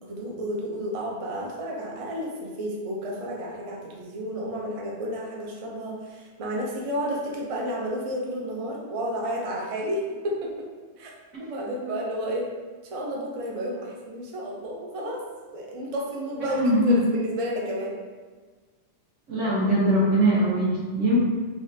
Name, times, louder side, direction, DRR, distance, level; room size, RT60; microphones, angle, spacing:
voice 1, 0.0-10.7 11.0-11.1 11.4-12.5 12.9-15.2 15.5-17.9, equal, 55° right, -2 dB, 0.3 m, -31 dB
voice 2, 16.4-17.0 19.3-21.2, right 1 dB, 80° right, -9 dB, 1.5 m, -22 dB
3.6 x 2.3 x 2.6 m, 1.4 s
omnidirectional pair, 1.3 m